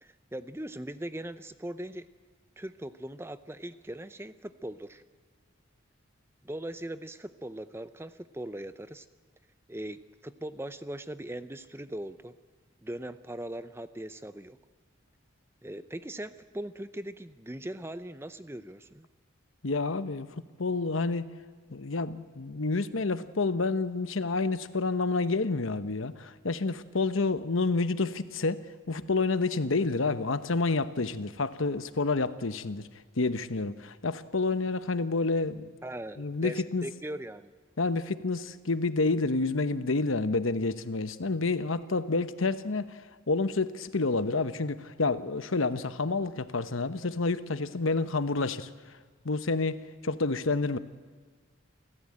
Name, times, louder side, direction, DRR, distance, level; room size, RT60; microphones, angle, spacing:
voice 1, 0.0-2.1 2.6-5.0 6.4-9.1 9.7-12.4 12.8-14.6 15.6-19.1 35.8-37.5, right 1 dB, 10° right, 13 dB, 0.6 m, -40 dB
voice 2, 19.6-21.3 21.7-32.8 33.2-35.7 36.2-36.8 37.8-48.7 49.2-50.8, left 3 dB, 85° left, 12 dB, 1.0 m, -29 dB
28.5 x 14.5 x 8.7 m, 1.5 s
head